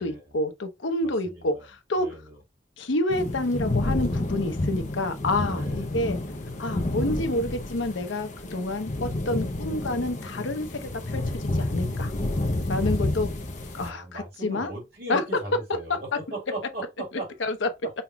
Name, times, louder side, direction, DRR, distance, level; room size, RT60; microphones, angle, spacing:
voice 1, 0.0-2.1 2.8-6.2 6.6-10.7 11.1-12.1 12.7-13.3 13.7-14.7 15.1-15.2 15.9-16.0 17.4-17.7, left 2 dB, 80° left, 0.7 m, -28 dB
voice 2, 1.0-1.6 2.0-2.4 5.5-6.0 12.6-12.9 13.8-17.3 17.8-17.9, right 1 dB, 55° right, 2.4 m, -38 dB
sound 1, 3.1-13.9, left 2 dB, 40° left, 0.8 m, -30 dB
5.5 x 2.9 x 2.2 m
head